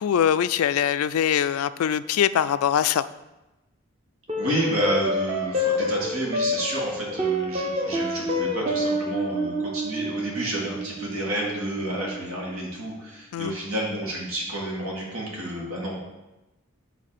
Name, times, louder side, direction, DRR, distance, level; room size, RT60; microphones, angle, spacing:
voice 1, 0.0-3.0 13.3-13.6, left 9 dB, 85° left, 15 dB, 0.3 m, -22 dB
sound 1, 4.3-12.9, equal, 30° right, 1.0 m, -28 dB
voice 2, 4.4-16.0, right 1 dB, 80° right, -2 dB, 2.2 m, -30 dB
8.5 x 3.3 x 6.6 m, 1.0 s
head